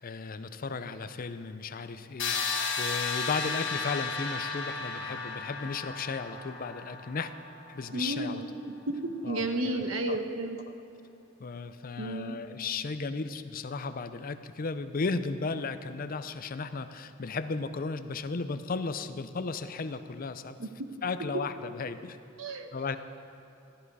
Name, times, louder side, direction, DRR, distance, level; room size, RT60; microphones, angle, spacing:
voice 1, 0.0-7.3 7.7-8.4 9.2-10.2 11.4-20.6 21.0-22.2 22.7-23.0, left 4 dB, 45° left, 11 dB, 0.5 m, -35 dB
sound 1, 2.2-8.0, left 4 dB, 60° left, 1.3 m, -34 dB
voice 2, 7.9-8.5 8.9-10.6 12.0-12.4 20.6-20.7 22.4-22.7, right 2 dB, 85° right, 6 dB, 1.1 m, -32 dB
14.0 x 12.5 x 4.8 m, 2.8 s
head